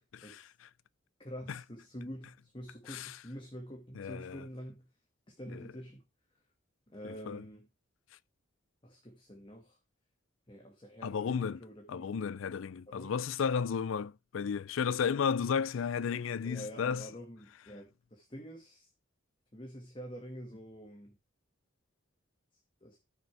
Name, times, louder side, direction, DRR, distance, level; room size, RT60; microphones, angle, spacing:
voice 1, 0.1-0.5 1.5-1.6 2.9-3.2 4.0-4.4 5.5-5.7 7.0-7.4 11.0-11.6 11.9-17.1, left 6 dB, 80° left, 0.4 m, -33 dB
voice 2, 1.2-4.8 5.3-6.0 6.9-7.7 8.8-9.8 10.5-12.1 12.9-13.1 16.4-18.9 19.5-21.2 22.8-23.0, equal, 25° left, 1.9 m, -47 dB
13.5 x 6.7 x 3.4 m
head